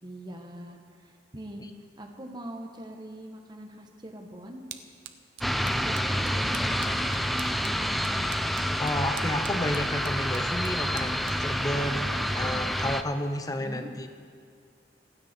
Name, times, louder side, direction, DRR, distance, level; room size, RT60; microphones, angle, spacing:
voice 1, 0.0-1.6 2.0-4.6 5.8-7.4 13.5-13.9, right 1 dB, 25° right, 2 dB, 1.2 m, -42 dB
sound 1, 4.1-12.7, right 9 dB, 90° right, 0.9 m, -49 dB
sound 2, 5.4-13.0, equal, ahead, 0.4 m, -28 dB
voice 2, 8.8-14.1, left 1 dB, 20° left, 7 dB, 0.9 m, -31 dB
26.5 x 9.6 x 4.4 m, 2.2 s
head